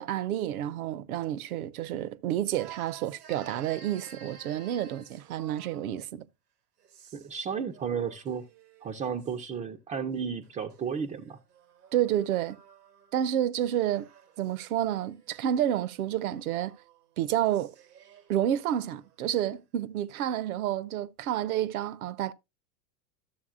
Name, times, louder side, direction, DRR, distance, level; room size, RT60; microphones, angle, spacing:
voice 1, 0.0-6.3 11.9-12.6 13.1-14.1 14.4-16.8 17.2-17.7 18.3-22.3, right 11 dB, 70° right, 0.7 m, -29 dB
sound 1, 2.6-6.0 6.8-7.4 7.7-9.4 10.4-13.2 13.6-19.2, right 7 dB, 85° right, 1.0 m, -53 dB
voice 2, 7.1-8.5 8.8-11.4, right 7 dB, 15° right, 0.3 m, -33 dB
13.0 x 7.0 x 2.4 m
hypercardioid pair, 95°, 45 cm